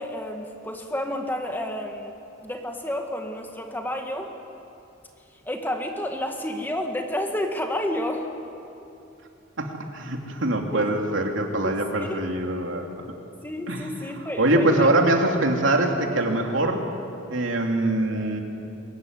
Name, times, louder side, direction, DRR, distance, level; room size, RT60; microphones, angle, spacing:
voice 1, 0.0-2.1 2.4-4.3 5.5-8.3 10.7-10.9 11.6-11.8 12.1-12.2 13.4-14.9, left 1 dB, 10° left, 3 dB, 1.8 m, -30 dB
voice 2, 9.6-12.9 13.7-13.9 14.4-16.9 17.3-18.4, right 1 dB, 70° right, 2 dB, 2.9 m, -23 dB
23.0 x 21.0 x 9.6 m, 2.7 s
head